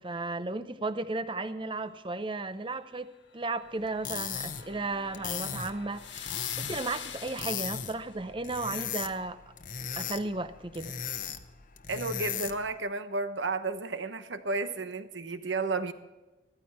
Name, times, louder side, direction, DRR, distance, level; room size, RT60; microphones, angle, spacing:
voice 1, 0.0-3.1 3.3-9.4 10.0-10.9, right 3 dB, 25° right, 12 dB, 0.7 m, -34 dB
sound 1, 3.4-8.1, left 8 dB, 70° left, 1.5 m, -44 dB
sound 2, 3.8-12.7, left 8 dB, 45° left, 0.8 m, -38 dB
voice 2, 11.9-15.9, right 3 dB, 75° right, 10 dB, 1.0 m, -32 dB
14.5 x 13.5 x 4.3 m, 1.1 s
head